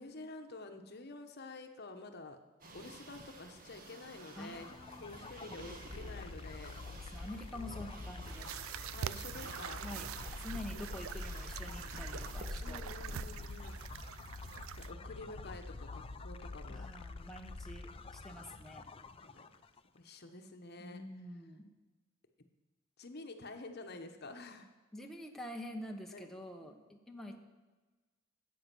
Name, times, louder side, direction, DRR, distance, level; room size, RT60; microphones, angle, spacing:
voice 1, 0.0-2.4 2.7-4.7 5.0-6.8 7.5-7.9 8.9-9.8 10.7-10.8 12.6-13.8 14.1-14.2 14.7-16.9 19.2-19.5 19.9-21.0 23.0-24.7 26.1-26.3 26.6-26.7 27.3-27.4, left 2 dB, 55° left, 6 dB, 1.0 m, -49 dB
sound 1, 2.6-13.1, right 2 dB, 45° right, 1.3 m, -54 dB
sound 2, 4.1-19.8, left 3 dB, 30° left, 0.5 m, -46 dB
voice 2, 4.3-5.3 6.9-8.5 9.8-10.1 10.4-12.8 16.7-18.9 20.8-21.7 24.9-27.4, left 1 dB, ahead, 1 dB, 0.9 m, -47 dB
sound 3, 8.2-14.9, right 9 dB, 90° right, 0.4 m, -45 dB
13.5 x 8.4 x 6.0 m, 1.3 s
head